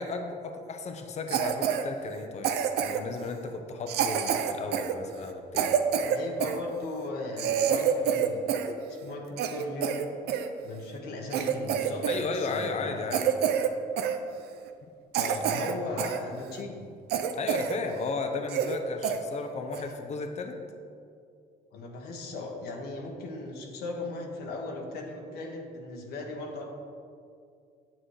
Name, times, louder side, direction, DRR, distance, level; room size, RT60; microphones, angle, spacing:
voice 1, 0.0-2.5 2.8-5.8 12.1-13.2 14.8-14.9 15.2-15.7 17.3-20.6, left 4 dB, 40° left, 5 dB, 1.0 m, -35 dB
Cough, 1.3-1.8 2.4-3.1 3.9-6.6 7.0-7.1 7.4-8.7 9.0-10.5 10.9-11.0 11.3-12.2 12.5-12.7 13.1-13.7 14.0-14.2 14.7-14.8 15.1-16.2 16.6-16.7 17.1-17.8 18.1-18.2 18.5-18.8 19.0-19.2 19.7-19.9, right 8 dB, 75° right, 0.7 m, -27 dB
voice 2, 6.0-8.5 8.9-10.1 10.6-13.1 15.4-16.8 21.7-26.7, left 2 dB, 70° left, 0 dB, 1.5 m, -37 dB
9.0 x 7.2 x 4.9 m, 2.3 s
cardioid pair, 110°, 17 cm